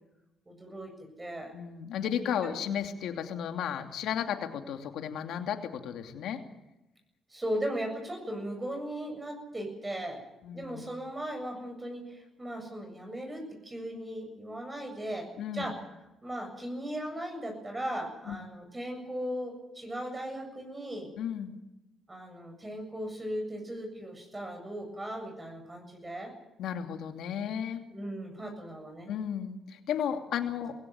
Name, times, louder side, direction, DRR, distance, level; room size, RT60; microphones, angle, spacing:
voice 1, 0.5-0.9 1.2-1.5 2.4-2.5 7.3-10.2 10.5-15.8 16.2-21.1 22.1-26.3 27.9-29.1, right 1 dB, 20° right, 3 dB, 7.7 m, -37 dB
voice 2, 1.5-6.4 10.4-10.9 15.4-15.7 18.3-18.4 21.2-21.5 26.6-27.8 29.1-30.7, left 9 dB, 80° left, 5 dB, 2.7 m, -34 dB
21.5 x 17.0 x 9.6 m, 0.93 s
cardioid pair, 90°, 0 cm